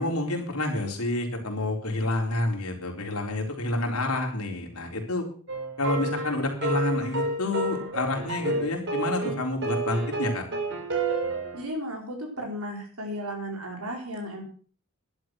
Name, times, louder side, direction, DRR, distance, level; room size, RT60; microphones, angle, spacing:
voice 1, 0.0-5.2 5.8-10.4, left 2 dB, 80° left, 1 dB, 4.0 m, -28 dB
sound 1, 5.5-11.6, right 2 dB, 55° right, 3.8 m, -30 dB
voice 2, 11.5-14.4, equal, 85° right, 2 dB, 4.4 m, -34 dB
12.0 x 11.5 x 6.2 m, 0.43 s
head